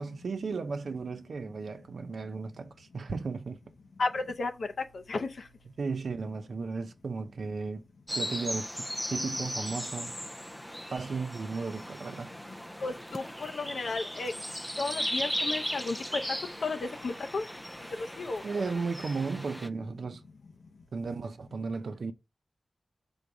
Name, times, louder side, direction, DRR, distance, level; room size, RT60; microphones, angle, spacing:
voice 1, 0.0-3.6 5.8-7.8 8.1-10.1 10.9-12.3 18.4-20.2 20.9-22.1, right 4 dB, 85° right, 0.7 m, -35 dB
voice 2, 4.0-4.7 4.9-5.3 12.8-14.3 14.8-16.2 16.6-17.4 18.0-18.8, left 3 dB, 90° left, 0.7 m, -33 dB
sound 1, 8.1-19.7, equal, 5° left, 0.4 m, -37 dB
5.4 x 4.0 x 4.8 m
wide cardioid pair, 70°, 0 cm